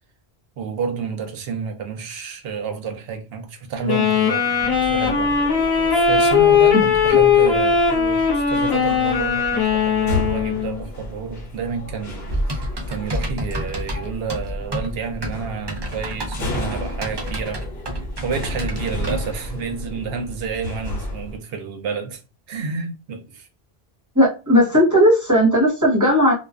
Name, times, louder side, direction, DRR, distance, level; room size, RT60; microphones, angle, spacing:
voice 1, 0.6-5.4 5.9-17.6 18.2-22.2 22.5-23.5, right 5 dB, 70° right, 0.8 m, -30 dB
Wind instrument woodwind instrument, 3.8-10.8, left 6 dB, 30° left, 0.6 m, -18 dB
sound 1, 4.6-21.4, left 1 dB, 70° left, 1.0 m, -33 dB
Typing, 12.3-19.3, equal, 45° right, 0.3 m, -29 dB
voice 2, 24.1-26.3, equal, 20° right, 0.9 m, -16 dB
2.4 x 2.3 x 2.3 m
omnidirectional pair, 1.1 m